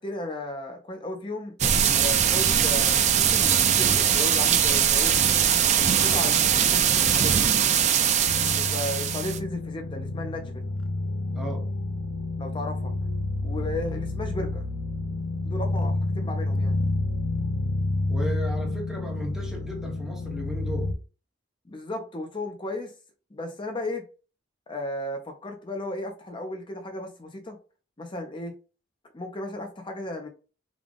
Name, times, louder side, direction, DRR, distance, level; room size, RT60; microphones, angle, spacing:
voice 1, 0.0-5.2 5.7-7.5 8.4-10.7 12.4-12.9 13.4-14.6 15.4-16.7 21.7-22.9 23.3-24.1 24.7-27.6 28.0-28.5 29.1-30.3, left 1 dB, 25° left, 0.6 m, -35 dB
sound 1, 1.6-9.4, right 8 dB, 35° right, 0.3 m, -21 dB
sound 2, 8.3-20.9, left 2 dB, 80° left, 0.5 m, -29 dB
voice 2, 11.3-11.7 18.1-21.0, equal, ahead, 1.0 m, -35 dB
3.7 x 2.3 x 3.4 m
head